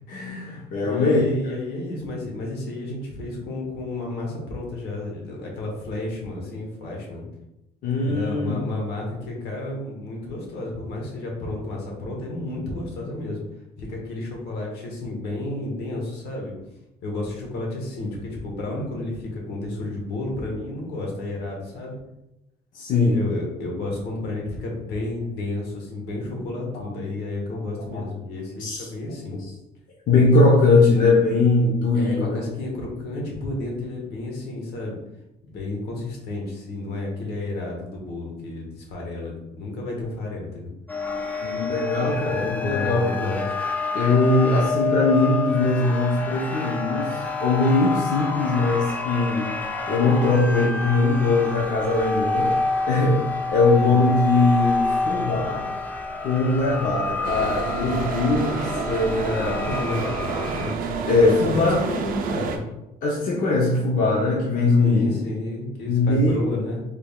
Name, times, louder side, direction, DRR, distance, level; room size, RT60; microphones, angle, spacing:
voice 1, 0.0-1.2 7.8-8.6 22.7-23.2 26.8-27.0 27.9-28.0 28.6-28.9 30.1-32.4 41.4-43.1 43.9-49.5 49.9-52.5 52.9-53.2 53.5-55.6 56.2-59.6 61.1-61.8 63.0-65.2 65.9-66.4, left 3 dB, 55° left, -3 dB, 0.7 m, -21 dB
voice 2, 0.8-7.3 8.0-13.4 13.8-16.5 17.0-22.0 23.1-29.4 31.9-35.0 35.4-40.7 42.0-43.5 53.7-54.1 59.2-60.8 61.2-62.7 64.8-66.8, left 2 dB, 75° left, -1 dB, 1.1 m, -31 dB
sound 1, 40.9-60.8, left 3 dB, 10° left, 0.4 m, -28 dB
sound 2, 57.2-62.6, right 5 dB, 55° right, 0.5 m, -29 dB
3.4 x 3.4 x 2.3 m, 0.90 s
cardioid pair, 110°, 17 cm